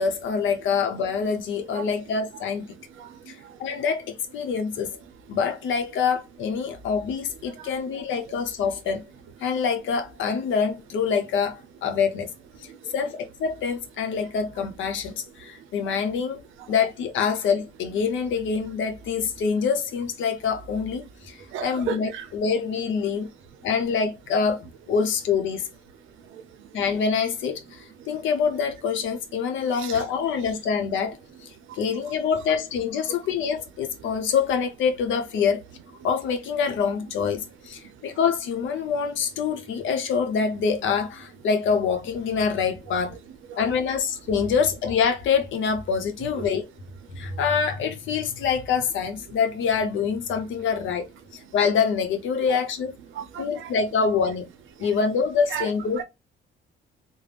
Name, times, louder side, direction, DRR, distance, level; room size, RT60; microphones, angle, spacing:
voice 1, 0.0-2.8 3.3-4.9 5.3-9.1 9.4-12.3 12.6-16.4 16.7-23.3 23.6-25.7 26.7-31.2 31.4-35.6 36.0-43.2 43.6-46.6 47.1-51.1 51.3-52.9 53.4-54.5 54.8-56.0, left 6 dB, 75° left, 0.6 m, -25 dB
voice 2, 3.0-3.8 7.5-7.7 12.7-12.9 15.6-15.7 16.6-16.7 21.4-22.3 26.2-26.7 28.0-28.2 29.8-30.0 31.6-31.8 34.0-34.1 37.9-38.2 43.5-43.6 46.4-46.5 47.1-47.4 52.5-52.6 53.1-53.7 54.8-54.9 55.5-55.7 56.0-56.1, right 9 dB, 80° right, 0.5 m, -37 dB
2.4 x 2.0 x 3.2 m
cardioid pair, 90°, 20 cm